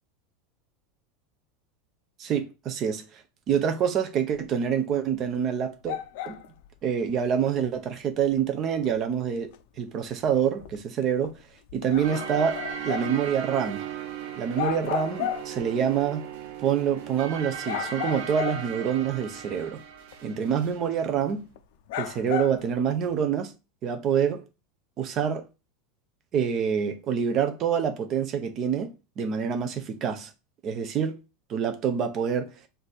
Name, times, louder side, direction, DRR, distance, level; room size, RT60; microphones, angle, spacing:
voice 1, 2.2-3.2 3.5-6.0 6.2-6.4 6.8-9.5 9.8-11.3 11.7-12.6 12.8-13.9 14.4-16.3 16.6-19.8 20.2-21.5 22.0-23.5 23.8-24.4 25.0-25.4 26.3-30.3 30.6-31.2 31.5-32.5, right 8 dB, 30° right, 0.6 m, -26 dB
sound 1, 4.8-4.9 5.3-5.4 5.8-6.7 7.1-7.2 7.6-7.7 8.2-8.3 8.8-8.9 9.4-9.5 10.1-10.2 10.6-11.3 11.7-13.2 13.6-13.7 14.3-14.4 14.5-15.6 16.2-16.3 17.0-17.1 17.6-18.9 19.4-19.5 20.1-20.2 20.8-20.9 21.6-21.7 21.9-23.0, left 11 dB, 60° left, 0.4 m, -34 dB
sound 2, 12.0-20.8, right 8 dB, 80° right, 0.7 m, -37 dB
4.5 x 2.6 x 3.9 m
supercardioid pair, 175°, 0 cm